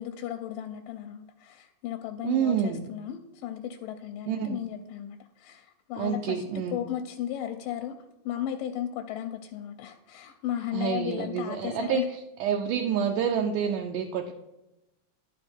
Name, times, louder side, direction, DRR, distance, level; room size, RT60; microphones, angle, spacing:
voice 1, 0.0-6.4 6.7-7.9 8.3-12.1, left 11 dB, 90° left, 5 dB, 2.3 m, -35 dB
voice 2, 2.2-2.9 4.3-4.6 6.0-6.8 10.7-12.0 12.4-14.3, right 8 dB, 80° right, 3 dB, 2.0 m, -28 dB
11.0 x 5.3 x 4.3 m, 0.96 s
omnidirectional pair, 3.9 m